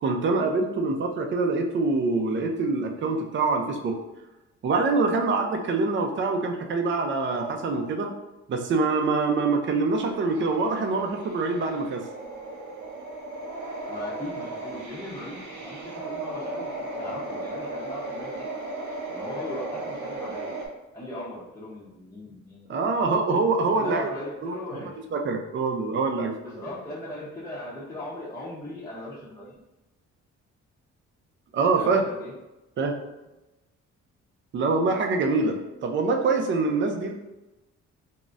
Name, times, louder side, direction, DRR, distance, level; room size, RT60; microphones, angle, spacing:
voice 1, 0.0-4.0 4.6-8.1 8.5-12.0 22.7-24.1 24.4-24.5 25.1-26.3 31.5-32.0 32.8-33.0 34.5-37.1, right 3 dB, 40° right, 4 dB, 0.5 m, -25 dB
sound 1, 9.8-20.7, right 2 dB, 75° right, 0.8 m, -36 dB
voice 2, 13.9-18.5 19.1-20.6 20.9-23.0 23.7-25.0 26.4-29.5 31.7-32.3, left 1 dB, 10° left, -8 dB, 0.7 m, -38 dB
3.7 x 2.0 x 2.4 m, 1.0 s
cardioid pair, 90°, 30 cm